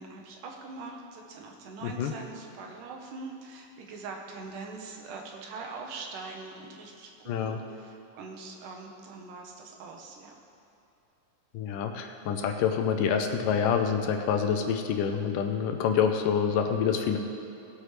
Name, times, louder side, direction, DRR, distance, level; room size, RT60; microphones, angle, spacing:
voice 1, 0.0-10.3, right 3 dB, 75° right, 1 dB, 2.7 m, -42 dB
voice 2, 1.8-2.1 7.3-7.6 11.5-17.2, left 7 dB, 80° left, 5 dB, 2.2 m, -27 dB
19.0 x 8.2 x 3.3 m, 2.9 s
omnidirectional pair, 4.0 m